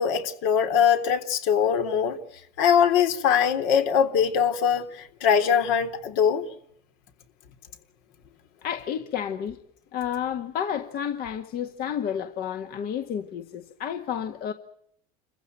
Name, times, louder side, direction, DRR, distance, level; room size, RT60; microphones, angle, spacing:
voice 1, 0.0-2.2 2.6-6.5, left 8 dB, 70° left, 3.4 m, -22 dB
voice 2, 8.6-9.6 9.9-14.5, left 8 dB, 50° left, 1.8 m, -31 dB
29.0 x 15.5 x 9.2 m
supercardioid pair, 115°, 19 cm